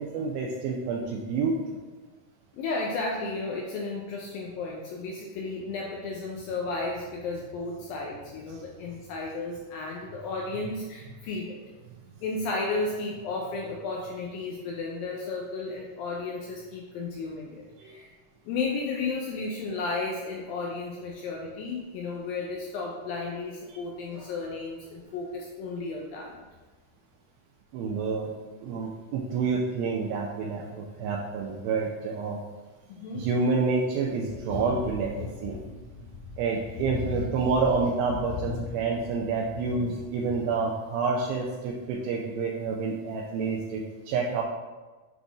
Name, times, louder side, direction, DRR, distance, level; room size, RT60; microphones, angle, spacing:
voice 1, 0.0-1.8 17.8-17.9 23.7-23.8 27.7-28.3 28.6-32.4 33.1-35.6 36.4-44.4, right 4 dB, 85° right, -2 dB, 2.1 m, -28 dB
voice 2, 2.5-11.6 12.2-18.1 18.5-26.4 32.9-33.3 34.5-34.8 35.2-36.1 36.7-37.5 38.3-38.7 39.2-39.3 39.8-40.0, left 3 dB, 85° left, -1 dB, 2.0 m, -33 dB
7.8 x 4.0 x 3.5 m, 1.3 s
omnidirectional pair, 4.9 m